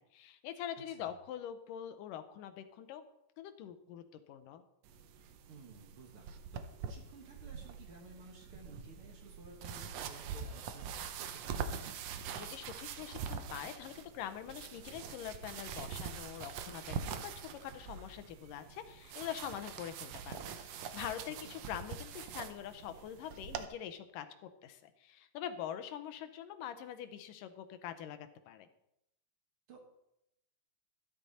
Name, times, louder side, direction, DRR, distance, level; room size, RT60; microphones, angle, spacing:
voice 1, 0.0-3.0 3.4-4.6 12.4-28.7, left 10 dB, 80° left, 9 dB, 2.5 m, -44 dB
sound 1, 4.8-23.7, right 7 dB, 70° right, 1.6 m, -44 dB
voice 2, 5.5-11.7 21.4-21.5 29.7-29.8, right 3 dB, 45° right, 2 dB, 2.2 m, -55 dB
13.0 x 11.5 x 4.2 m, 0.83 s
omnidirectional pair, 3.8 m